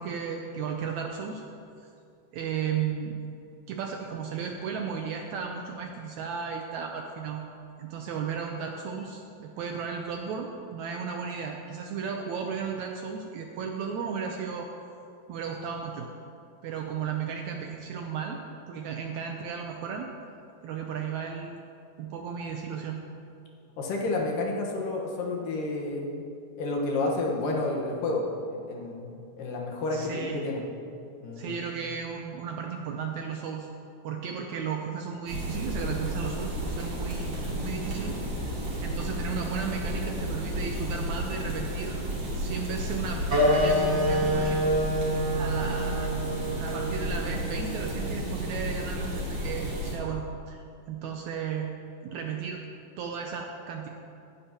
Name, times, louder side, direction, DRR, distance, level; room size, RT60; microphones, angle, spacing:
voice 1, 0.0-1.4 1.8-1.9 2.3-3.2 3.7-7.4 7.8-14.7 15.3-16.1 16.6-18.4 18.7-20.1 20.6-21.5 22.0-23.0 29.9-30.4 31.3-33.7 34.0-42.0 42.4-43.2 43.5-44.8 45.3-50.6 50.9-51.7 52.0-52.6 53.0-53.9, right 6 dB, 75° right, 2 dB, 1.7 m, -34 dB
voice 2, 23.8-26.2 26.6-29.1 29.4-30.6 31.2-31.6, left 2 dB, 80° left, -1 dB, 2.9 m, -30 dB
sound 1, 35.3-50.0, equal, 55° right, 4.0 m, -32 dB
Wind instrument woodwind instrument, 43.3-48.4, equal, 35° right, 1.1 m, -27 dB
17.5 x 10.0 x 2.9 m, 2.5 s
omnidirectional pair, 3.9 m